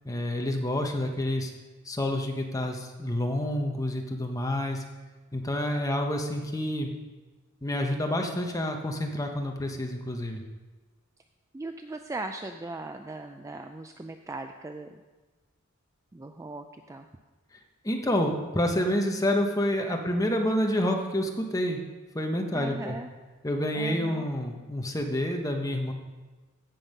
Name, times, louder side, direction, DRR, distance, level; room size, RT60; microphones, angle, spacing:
voice 1, 0.0-1.5 1.8-4.8 5.3-6.9 7.6-10.4 17.8-21.8 22.1-23.0 23.4-25.9, left 1 dB, 15° left, 3 dB, 1.0 m, -28 dB
voice 2, 11.5-14.9 16.1-17.1 22.5-23.1 23.7-24.2, right 2 dB, 15° right, 6 dB, 0.3 m, -38 dB
15.5 x 5.4 x 5.5 m, 1.3 s
head